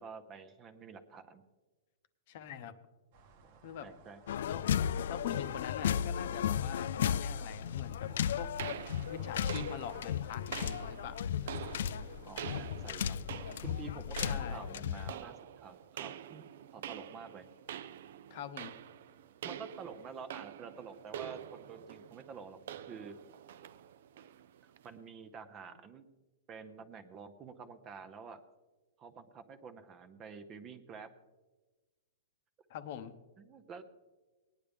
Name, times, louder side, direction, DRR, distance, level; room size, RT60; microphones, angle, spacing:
voice 1, 0.0-1.4 3.8-4.2 12.2-13.2 13.6-17.4 19.4-23.1 24.6-26.1 26.5-28.4 29.0-31.1 33.4-33.8, right 5 dB, 20° right, 11 dB, 0.6 m, -49 dB
voice 2, 2.3-2.7 3.6-3.9 4.4-4.7 5.1-8.1 8.4-8.5 9.0-11.7 14.2-14.6 18.3-18.7 32.7-33.1, left 9 dB, 45° left, 11 dB, 0.8 m, -44 dB
sound 1, 3.1-10.1, right 5 dB, 40° right, 1.0 m, -57 dB
sound 2, 4.3-15.1, left 9 dB, 65° left, 0.3 m, -35 dB
sound 3, 8.6-24.9, right 10 dB, 55° right, 0.5 m, -47 dB
19.0 x 10.0 x 3.5 m, 1.2 s
supercardioid pair, 170°, 0 cm